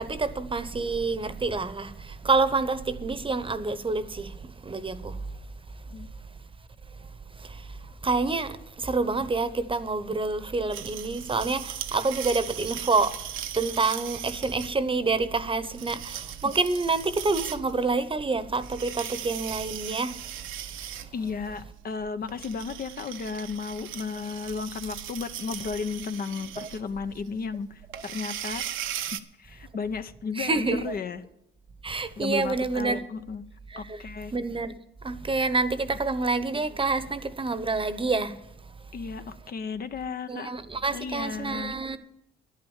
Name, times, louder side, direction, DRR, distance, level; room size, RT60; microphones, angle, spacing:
voice 1, 0.0-5.3 7.4-13.2 13.5-20.3 26.6-26.7 30.4-31.0 31.8-33.0 33.7-34.0 34.3-34.7 35.0-38.4 40.3-42.0, right 3 dB, 25° right, 1.0 m, -28 dB
sound 1, 10.7-29.2, right 11 dB, 80° right, 0.9 m, -39 dB
voice 2, 21.1-28.6 29.1-31.2 32.2-33.4 33.8-34.3 38.9-40.5 40.9-41.7, left 5 dB, 50° left, 0.9 m, -34 dB
10.5 x 9.5 x 7.2 m
cardioid pair, 90°, 20 cm